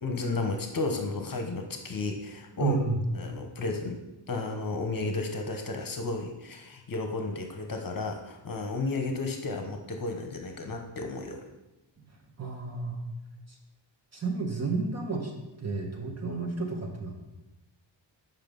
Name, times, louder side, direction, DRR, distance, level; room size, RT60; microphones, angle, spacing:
voice 1, 0.0-2.8 3.2-11.4, left 3 dB, 45° left, 4 dB, 1.1 m, -33 dB
voice 2, 2.6-3.0 12.0-12.1 12.4-13.0 13.5-13.6 14.1-15.3 15.6-17.1, right 4 dB, 35° right, 0 dB, 1.7 m, -31 dB
8.2 x 5.8 x 5.3 m, 0.97 s
wide cardioid pair, 125°, 46 cm